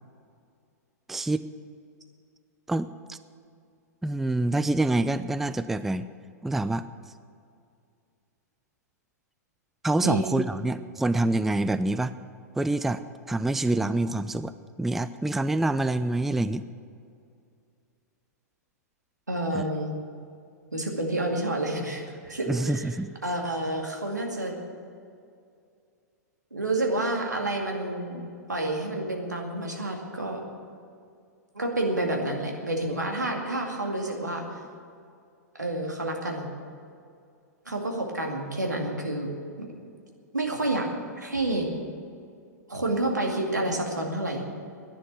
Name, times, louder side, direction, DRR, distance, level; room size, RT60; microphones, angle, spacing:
voice 1, 1.1-1.5 2.7-3.2 4.0-6.1 6.4-6.8 9.8-12.1 12.6-13.0 13.3-16.6 19.5-19.6 22.5-23.1, right 2 dB, 5° right, 13 dB, 0.3 m, -26 dB
voice 2, 19.3-19.9 20.7-22.9 23.2-24.6 26.5-30.4 31.5-34.4 35.6-36.5 37.7-39.3 39.6-39.7 40.3-40.9 41.2-41.7 42.7-44.4, right 1 dB, 80° right, 1 dB, 2.3 m, -29 dB
11.0 x 10.0 x 9.3 m, 2.3 s
figure-of-eight pair, 100°, 9 cm